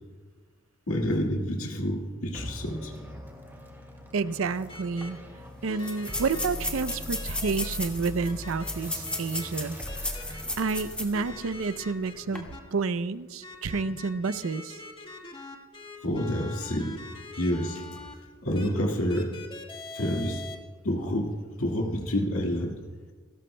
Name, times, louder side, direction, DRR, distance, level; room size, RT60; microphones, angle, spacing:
voice 1, 0.9-3.1 10.2-10.6 16.0-17.0 17.4-18.0 18.4-19.3 19.9-20.4 20.8-22.8, equal, 85° left, 0 dB, 1.9 m, -29 dB
sound 1, 2.3-13.1, equal, 10° right, 2.3 m, -41 dB
voice 2, 4.1-5.2 5.6-9.8 10.3-14.8, right 4 dB, 75° right, 14 dB, 0.5 m, -30 dB
sound 2, 4.7-5.1 5.7-6.5 6.9-7.7 8.2-8.7 9.0-9.5 9.9-10.8 11.1-12.6 13.4-18.1 18.5-18.7 19.1-20.6, left 3 dB, 25° left, 1.5 m, -43 dB
sound 3, 4.7-4.8 5.0-5.1 5.8-11.2 11.6-11.7 12.2-12.4, left 1 dB, 5° left, 1.7 m, -35 dB
29.0 x 13.0 x 2.2 m, 1.5 s
head